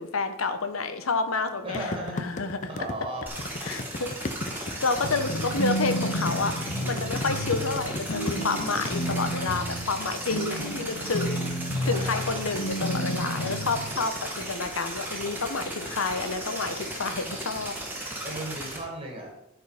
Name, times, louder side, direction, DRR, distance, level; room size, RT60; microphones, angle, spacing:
voice 1, 0.0-2.7 3.6-6.5 6.8-11.5 11.8-17.7, left 4 dB, 90° left, 9 dB, 0.9 m, -29 dB
voice 2, 1.6-3.3 11.8-12.4 18.2-19.3, right 1 dB, 25° right, 0 dB, 2.1 m, -37 dB
sound 1, 1.7-9.3, left 2 dB, 35° left, 0.6 m, -35 dB
sound 2, 3.3-18.8, right 1 dB, 10° right, 1.7 m, -36 dB
sound 3, 5.0-13.9, equal, 65° left, 1.1 m, -31 dB
12.0 x 4.7 x 5.0 m, 0.86 s
head